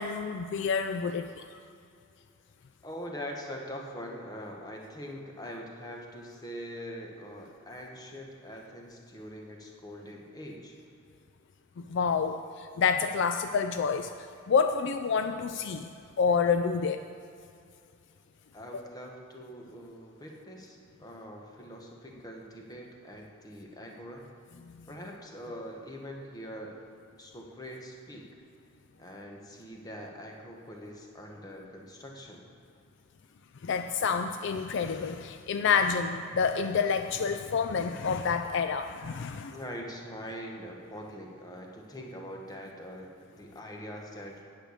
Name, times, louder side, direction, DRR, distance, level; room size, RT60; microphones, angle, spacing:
voice 1, 0.0-1.6 11.8-17.0 18.7-18.8 24.8-24.9 33.6-39.5, left 5 dB, 55° left, 8 dB, 0.3 m, -28 dB
voice 2, 2.8-10.8 18.5-24.3 24.9-26.8 27.2-28.3 29.0-32.4 39.5-44.4, equal, 20° left, 0 dB, 1.2 m, -43 dB
9.1 x 6.7 x 8.4 m, 2.4 s
head